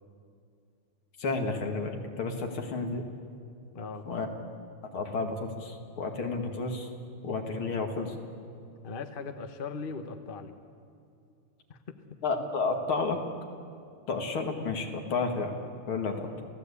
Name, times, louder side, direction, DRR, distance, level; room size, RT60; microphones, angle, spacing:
voice 1, 1.2-3.0 4.1-4.3 4.9-6.9 7.2-8.1 12.2-13.2 14.1-15.5 15.9-16.3, left 3 dB, 70° left, 3 dB, 3.0 m, -31 dB
voice 2, 3.7-4.1 8.8-10.5 11.7-12.0, left 4 dB, 35° left, 7 dB, 1.0 m, -39 dB
29.5 x 16.5 x 8.5 m, 2.5 s
omnidirectional pair, 2.4 m